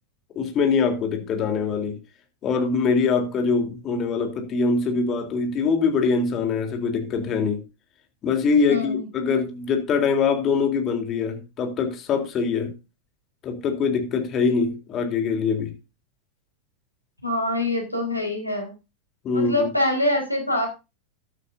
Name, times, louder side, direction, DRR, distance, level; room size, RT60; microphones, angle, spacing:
voice 1, 0.4-2.0 2.4-7.6 8.2-12.7 13.4-15.7 19.2-19.7, left 5 dB, 30° left, 3.6 m, -23 dB
voice 2, 8.7-9.1 17.2-18.7 19.3-20.7, left 1 dB, 90° left, 4.7 m, -24 dB
13.0 x 12.5 x 2.7 m
figure-of-eight pair, 90°, 0 cm